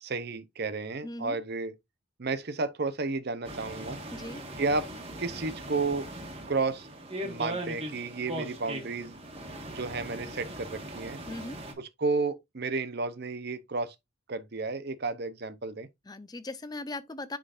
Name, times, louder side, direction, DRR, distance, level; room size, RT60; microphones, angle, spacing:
voice 1, 0.0-1.7 2.2-4.0 4.6-4.9 5.2-6.1 6.5-6.9 7.2-9.2 9.7-11.2 11.8-13.9 14.3-15.9, right 3 dB, 50° right, 0.7 m, -32 dB
voice 2, 1.0-1.4 4.1-4.4 11.3-11.6 16.1-17.4, left 2 dB, 20° left, 0.5 m, -38 dB
sound 1, 3.4-11.7, right 1 dB, 25° right, 1.4 m, -40 dB
9.9 x 3.8 x 2.5 m
head